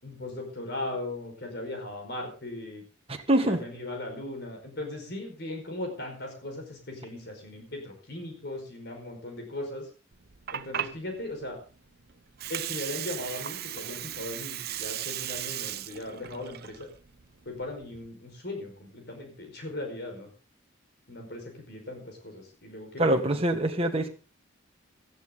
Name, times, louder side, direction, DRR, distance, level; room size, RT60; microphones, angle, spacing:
voice 1, 0.0-2.8 3.4-9.9 10.5-11.6 12.5-16.9 17.4-20.3 21.1-23.4, left 1 dB, 55° left, 3 dB, 4.9 m, -38 dB
voice 2, 3.1-3.6 23.0-24.1, right 1 dB, 30° right, 3 dB, 1.7 m, -24 dB
Water, 10.1-18.1, right 11 dB, 50° right, 0.8 m, -37 dB
18.0 x 13.5 x 3.9 m, 0.34 s
head